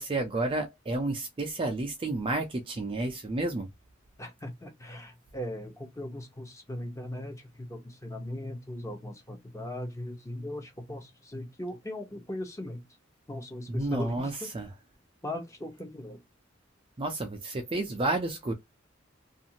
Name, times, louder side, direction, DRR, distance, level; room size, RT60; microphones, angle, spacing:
voice 1, 0.0-3.7 13.7-14.7 17.0-18.5, right 2 dB, 25° right, 0.4 m, -31 dB
voice 2, 4.2-12.8 13.3-14.5 15.2-16.2, left 1 dB, 15° left, 0.8 m, -39 dB
2.5 x 2.5 x 2.8 m
head